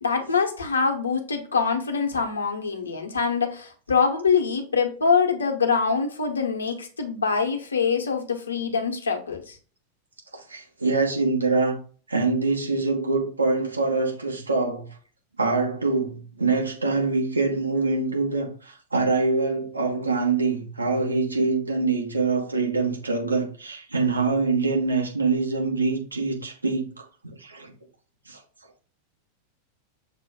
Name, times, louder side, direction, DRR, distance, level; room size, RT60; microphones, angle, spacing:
voice 1, 0.0-9.6, left 5 dB, 75° left, 0.8 m, -24 dB
voice 2, 10.3-11.8 12.1-14.9 15.4-26.9 27.2-27.7 28.3-28.4, right 3 dB, 80° right, 1.2 m, -24 dB
6.6 x 2.2 x 3.5 m
figure-of-eight pair, 90°, 0 cm